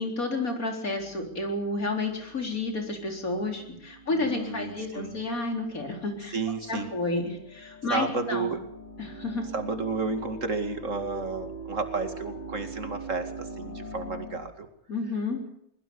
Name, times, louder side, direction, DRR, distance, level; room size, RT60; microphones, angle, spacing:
voice 1, 0.0-6.3 6.7-8.5 9.0-9.5 14.9-15.4, left 2 dB, 80° left, 3 dB, 4.5 m, -31 dB
sound 1, 1.0-14.4, right 3 dB, 35° left, 4.3 m, -44 dB
voice 2, 4.1-5.2 6.3-6.9 7.9-8.6 9.5-14.7, right 3 dB, 60° right, 7 dB, 2.6 m, -32 dB
23.0 x 20.5 x 7.0 m, 0.76 s
omnidirectional pair, 1.5 m